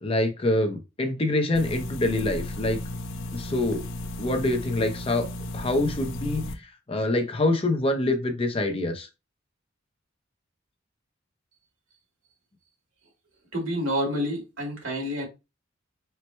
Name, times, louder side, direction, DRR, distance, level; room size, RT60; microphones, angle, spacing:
voice 1, 0.0-2.8 3.3-3.8 4.2-5.3 5.5-9.1, left 2 dB, 30° left, 0.6 m, -25 dB
sound 1, 1.5-6.5, left 1 dB, 75° left, 0.5 m, -34 dB
voice 2, 13.5-15.3, equal, 85° right, 2.2 m, -28 dB
4.5 x 2.1 x 4.3 m
head